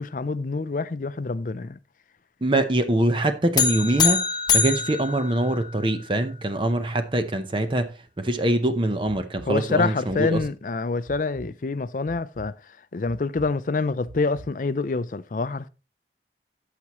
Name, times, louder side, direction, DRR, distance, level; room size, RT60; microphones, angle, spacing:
voice 1, 0.0-1.8 9.5-12.5 12.9-15.7, left 3 dB, 45° left, 0.4 m, -26 dB
voice 2, 2.4-4.2 4.5-7.9 8.2-10.4, right 1 dB, 30° right, 0.7 m, -23 dB
sound 1, 3.6-6.0, left 6 dB, 25° left, 1.0 m, -24 dB
sound 2, 9.3-9.5 10.0-10.5 11.0-11.5 12.0-12.5 13.0-13.5 14.0-14.5, right 1 dB, 70° right, 2.3 m, -43 dB
14.5 x 5.9 x 3.0 m
head